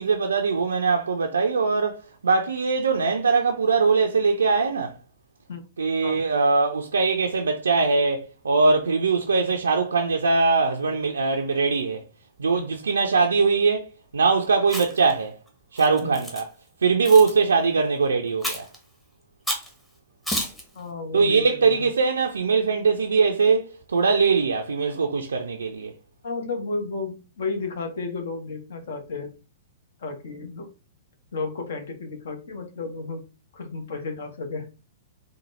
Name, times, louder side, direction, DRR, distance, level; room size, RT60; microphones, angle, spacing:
voice 1, 0.0-4.9 5.8-12.0 12.4-13.8 14.1-15.4 15.7-16.5 16.8-18.7 21.1-25.9, right 4 dB, 70° right, 0.4 m, -21 dB
Chewing mastication, 14.6-15.1 15.8-16.4 17.0-17.3 18.4-18.8 19.5-19.7 20.3-20.6, equal, 5° left, 0.9 m, -30 dB
voice 2, 20.7-21.9 26.2-29.3 30.0-30.7 31.3-33.2 33.5-34.7, left 3 dB, 60° left, 0.9 m, -32 dB
4.0 x 2.2 x 3.0 m
figure-of-eight pair, 105°, 0 cm